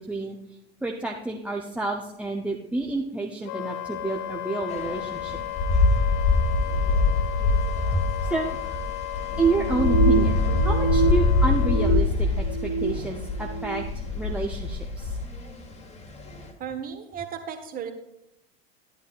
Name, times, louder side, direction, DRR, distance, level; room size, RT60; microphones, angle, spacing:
voice 1, 0.8-5.4 7.9-8.8 9.4-13.8 14.2-15.2, right 2 dB, 5° right, 0 dB, 0.7 m, -29 dB
Wind instrument woodwind instrument, 3.4-12.0, left 15 dB, 45° left, 0.7 m, -34 dB
sound 1, 4.7-16.5, left 3 dB, 20° left, 1.4 m, -25 dB
sound 2, 9.3-11.1 11.4-13.0 13.4-13.8, right 5 dB, 85° left, 4.0 m, -27 dB
voice 2, 16.6-17.9, right 8 dB, 25° right, 6 dB, 1.3 m, -35 dB
12.5 x 10.0 x 2.5 m, 0.85 s
figure-of-eight pair, 85°, 32 cm